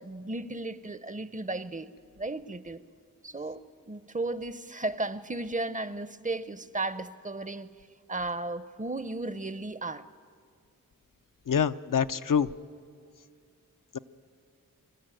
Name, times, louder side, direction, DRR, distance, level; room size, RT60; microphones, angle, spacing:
voice 1, 0.0-2.8 3.2-7.7 8.1-10.1, right 2 dB, 25° right, 0.6 m, -35 dB
voice 2, 11.5-12.5, left 7 dB, 70° left, 0.6 m, -25 dB
25.0 x 13.0 x 9.1 m
wide cardioid pair, 80°, 33 cm